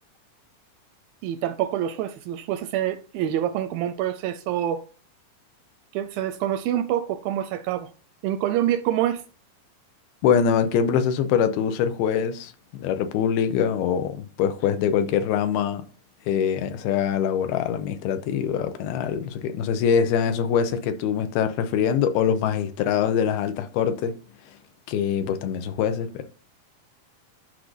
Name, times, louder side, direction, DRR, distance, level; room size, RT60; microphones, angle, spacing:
voice 1, 1.2-4.8 5.9-7.9 8.2-9.2, right 11 dB, 85° right, 2.1 m, -26 dB
voice 2, 10.2-12.5 12.8-15.8 16.3-24.1 24.9-26.3, left 8 dB, 90° left, 2.6 m, -23 dB
12.0 x 5.0 x 2.6 m
omnidirectional pair, 4.4 m